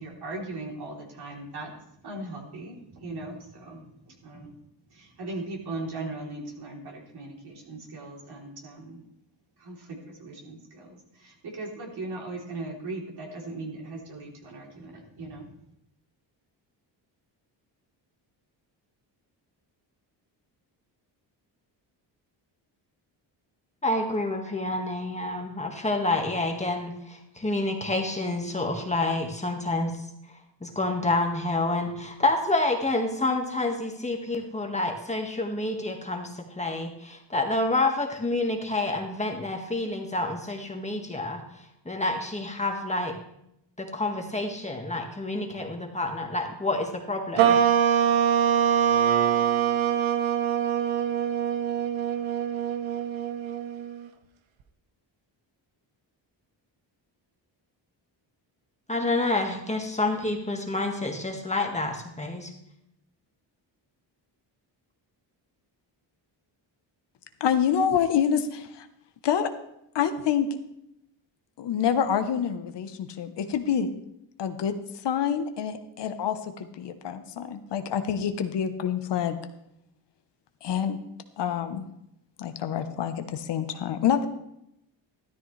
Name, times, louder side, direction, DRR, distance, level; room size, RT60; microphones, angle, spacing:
voice 1, 0.0-4.6 4.9-9.0 9.6-15.5, right 2 dB, 55° right, -1 dB, 3.5 m, -39 dB
voice 2, 23.8-30.0 30.6-43.1 43.8-47.6 58.9-62.5, left 2 dB, 15° left, 2 dB, 1.7 m, -28 dB
sound 1, 47.4-54.1, right 8 dB, 90° right, 1.1 m, -24 dB
voice 3, 67.4-68.9 69.2-69.5 69.9-70.5 71.6-73.9 74.4-74.7 75.0-79.4 80.6-81.0 81.4-81.9 82.4-84.3, left 8 dB, 65° left, 8 dB, 1.1 m, -27 dB
14.0 x 13.0 x 3.3 m, 0.80 s
cardioid pair, 115°, 45 cm